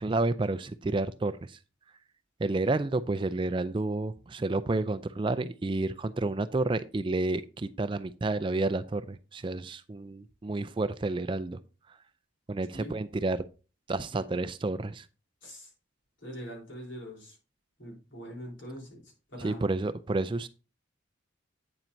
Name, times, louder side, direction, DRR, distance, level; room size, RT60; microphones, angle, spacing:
voice 1, 0.0-1.6 2.4-11.6 12.5-13.4 13.9-15.1 19.4-20.5, right 2 dB, 25° right, 13 dB, 0.3 m, -30 dB
voice 2, 16.2-17.4 17.8-19.6, equal, 70° left, -1 dB, 3.6 m, -43 dB
8.9 x 7.4 x 2.6 m, 0.34 s
head